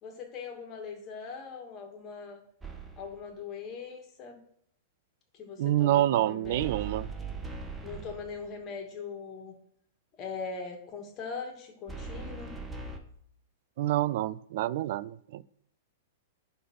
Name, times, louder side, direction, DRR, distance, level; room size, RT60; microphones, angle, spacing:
voice 1, 0.0-2.4 3.0-4.4 5.3-6.7 7.8-9.5 10.2-12.5, left 5 dB, 35° left, 2 dB, 2.4 m, -41 dB
sound 1, 2.6-3.2 6.4-8.5 11.9-13.0, right 4 dB, 15° right, 1.3 m, -40 dB
voice 2, 5.6-7.1 13.8-15.4, right 14 dB, 55° right, 20 dB, 0.4 m, -27 dB
11.0 x 4.0 x 5.8 m, 0.68 s
figure-of-eight pair, 100°, 0 cm